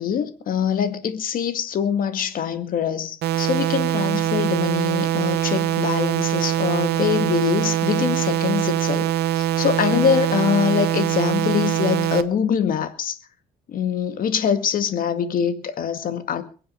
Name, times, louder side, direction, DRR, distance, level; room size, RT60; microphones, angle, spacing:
voice 1, 0.0-13.2 13.7-16.4, left 8 dB, 55° left, 2.1 m, -24 dB
sound 1, 3.2-12.2, right 12 dB, 70° right, 1.1 m, -23 dB
22.5 x 7.9 x 6.4 m
cardioid pair, 110°, 17 cm